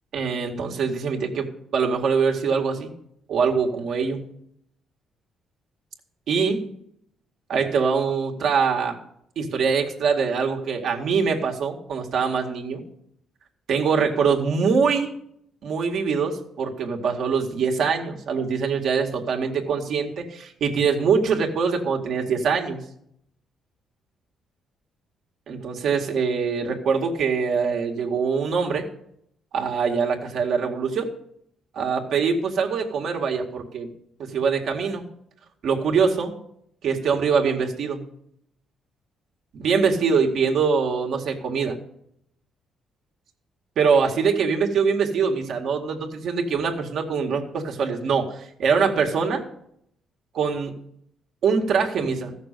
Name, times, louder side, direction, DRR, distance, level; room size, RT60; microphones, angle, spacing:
voice 1, 0.1-2.9 3.3-4.2 6.3-6.7 7.5-9.0 9.4-12.8 13.7-15.1 15.6-22.8 25.5-28.9 29.5-31.1 31.7-33.9 34.2-35.0 35.6-36.3 36.8-38.0 39.5-41.8 43.8-48.3 48.6-49.4 50.3-50.8 51.4-52.4, right 5 dB, 70° right, 1 dB, 2.0 m, -23 dB
14.5 x 6.7 x 6.7 m, 0.72 s
cardioid pair, 90°, 0 cm